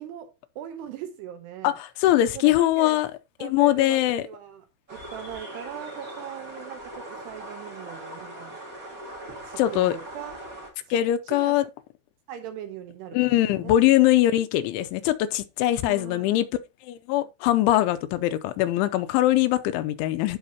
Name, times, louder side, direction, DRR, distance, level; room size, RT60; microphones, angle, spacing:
voice 1, 0.0-1.8 2.4-3.1 3.4-8.6 9.4-10.5 10.8-11.6 12.3-13.8 15.8-16.5, right 10 dB, 80° right, 2.5 m, -40 dB
voice 2, 1.6-3.1 3.4-4.2 9.6-10.0 10.9-11.7 13.1-16.5 16.8-20.4, left 14 dB, 80° left, 3.0 m, -22 dB
sound 1, 4.9-10.7, right 1 dB, 20° right, 2.6 m, -40 dB
16.0 x 5.5 x 2.8 m
omnidirectional pair, 5.7 m